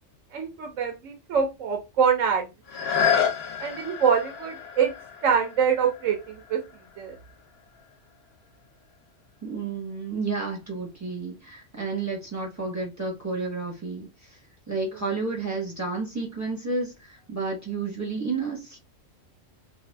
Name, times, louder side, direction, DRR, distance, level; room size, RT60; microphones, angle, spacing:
voice 1, 0.3-2.5 3.6-4.9 5.2-6.6 7.0-7.2, right 7 dB, 75° right, 1.0 m, -24 dB
sound 1, 2.6-8.3 8.9-9.0, left 7 dB, 65° left, 0.7 m, -30 dB
voice 2, 9.4-14.4 14.7-18.8, right 4 dB, 15° right, 0.9 m, -31 dB
2.6 x 2.2 x 3.3 m
omnidirectional pair, 1.3 m